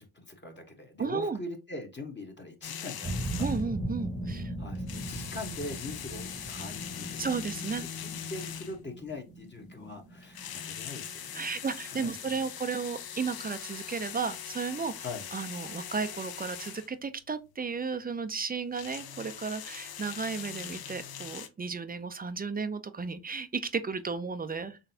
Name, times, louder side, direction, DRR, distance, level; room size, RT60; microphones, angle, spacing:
voice 1, 0.0-3.5 4.6-12.1 15.0-15.3, left 2 dB, 25° left, 1.1 m, -42 dB
voice 2, 1.0-1.4 3.4-4.5 7.2-7.9 11.3-14.9 15.3-24.8, right 5 dB, 20° right, 0.5 m, -34 dB
sound 1, 2.6-3.7 4.7-8.9 10.2-16.9 18.6-21.5, left 8 dB, 50° left, 0.7 m, -41 dB
sound 2, 3.0-11.8 12.2-12.7, right 1 dB, 5° right, 1.1 m, -39 dB
4.0 x 3.2 x 2.7 m
supercardioid pair, 55°, 47 cm